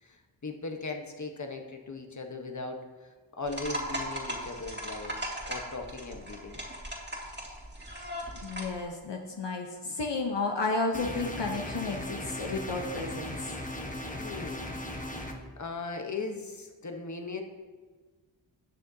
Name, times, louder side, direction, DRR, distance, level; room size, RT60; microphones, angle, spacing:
voice 1, 0.0-3.1 3.4-5.2 5.5-6.6 14.2-14.8 15.4-17.4, left 3 dB, 40° left, 4 dB, 1.1 m, -38 dB
sound 1, 3.5-8.8, equal, 25° right, 2.2 m, -38 dB
voice 2, 8.4-13.5, left 3 dB, 65° left, 2 dB, 0.9 m, -32 dB
sound 2, 10.9-15.3, left 1 dB, 15° left, 1.1 m, -37 dB
18.0 x 6.5 x 2.8 m, 1.4 s
wide cardioid pair, 65°, 46 cm